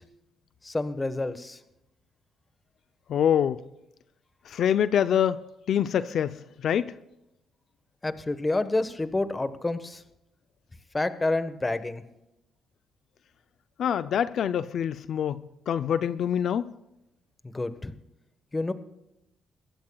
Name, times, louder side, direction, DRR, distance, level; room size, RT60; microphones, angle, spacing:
voice 1, 0.6-1.6 8.0-10.0 10.9-12.0 17.5-17.9 18.5-18.7, left 2 dB, 20° left, 1.4 m, -28 dB
voice 2, 3.1-3.6 4.5-5.4 5.7-6.9 13.8-16.7, left 9 dB, 65° left, 0.6 m, -25 dB
22.5 x 16.5 x 2.4 m
cardioid pair, 90°, 0 cm